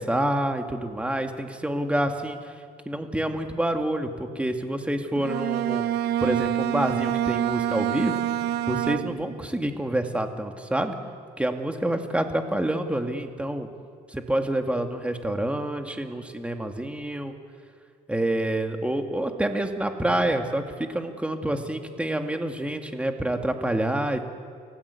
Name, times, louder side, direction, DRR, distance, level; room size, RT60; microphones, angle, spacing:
voice 1, 0.0-2.5 2.9-5.9 6.2-8.2 8.7-10.9 11.4-13.7 14.1-17.4 18.1-24.2, right 1 dB, 5° right, 5 dB, 2.1 m, -27 dB
Bowed string instrument, 5.2-9.4, right 11 dB, 75° right, 0.8 m, -27 dB
29.5 x 16.0 x 8.4 m, 2.1 s
cardioid pair, 110°, 17 cm